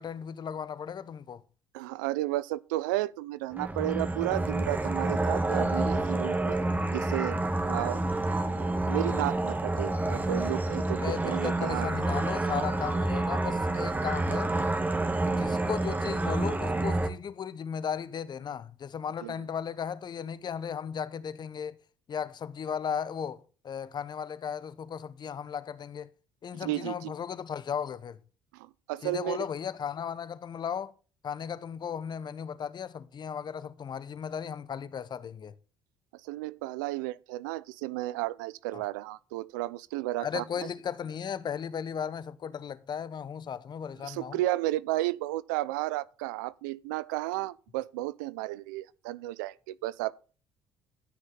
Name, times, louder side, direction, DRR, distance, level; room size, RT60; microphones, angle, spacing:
voice 1, 0.0-1.4 11.0-14.5 15.4-21.8 22.1-26.1 26.4-28.2 29.0-30.9 31.2-35.5 38.7-38.8 40.2-44.4, left 7 dB, 45° left, 0.9 m, -36 dB
voice 2, 1.7-6.6 6.9-7.4 7.7-8.1 8.4-11.9 12.5-12.7 15.3-15.6 19.2-19.5 26.6-27.1 28.5-29.4 36.2-40.7 44.0-50.1, right 17 dB, 90° right, 0.5 m, -33 dB
sound 1, 3.5-17.1, right 2 dB, 15° right, 1.6 m, -29 dB
13.0 x 6.5 x 3.8 m
supercardioid pair, 65°, 10 cm